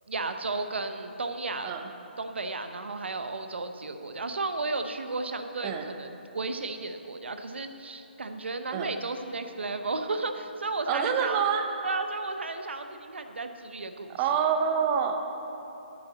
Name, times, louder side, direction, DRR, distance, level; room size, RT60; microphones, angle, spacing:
voice 1, 0.1-1.7 2.2-11.4 11.8-14.2, right 3 dB, 75° right, 7 dB, 0.8 m, -33 dB
voice 2, 10.9-11.7 14.2-15.1, right 7 dB, 25° right, 5 dB, 0.7 m, -26 dB
8.3 x 7.7 x 6.9 m, 3.0 s
figure-of-eight pair, 150°, 6 cm